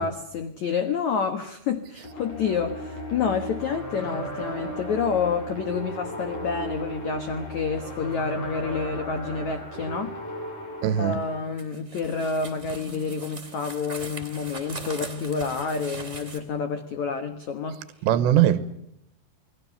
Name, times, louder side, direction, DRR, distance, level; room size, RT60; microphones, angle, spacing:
voice 1, 0.0-10.2 11.0-17.8, left 5 dB, 85° left, 1.6 m, -28 dB
sound 1, 2.0-11.4, right 1 dB, 35° left, 9.0 m, -36 dB
voice 2, 10.8-11.2 18.0-18.6, right 11 dB, 75° right, 3.0 m, -20 dB
sound 2, 11.6-16.4, right 3 dB, 15° right, 3.0 m, -40 dB
29.0 x 20.5 x 7.0 m
omnidirectional pair, 5.5 m